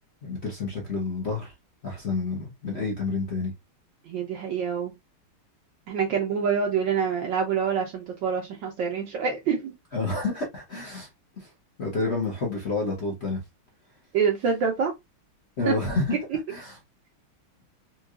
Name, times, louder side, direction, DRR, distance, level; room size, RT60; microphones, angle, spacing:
voice 1, 0.2-1.5 1.8-3.5 9.9-11.1 11.4-11.5 11.8-13.4 15.6-16.2 16.5-16.8, left 3 dB, 50° left, 0.8 m, -29 dB
voice 2, 4.1-4.9 5.9-9.7 14.1-14.9 15.7-15.8, right 6 dB, 70° right, 1.3 m, -26 dB
4.6 x 2.4 x 2.3 m
omnidirectional pair, 2.4 m